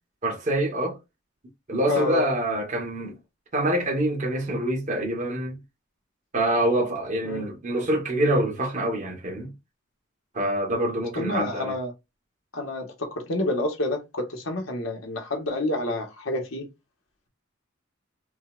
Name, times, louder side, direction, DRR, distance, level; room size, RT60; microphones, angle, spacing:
voice 1, 0.2-1.0 1.7-3.1 3.5-5.6 6.3-9.5 10.3-11.7, right 1 dB, 40° right, 1.4 m, -25 dB
voice 2, 1.9-2.3 7.2-7.4 11.1-11.9 12.5-16.7, left 2 dB, 90° left, 1.3 m, -28 dB
5.3 x 2.4 x 2.5 m
head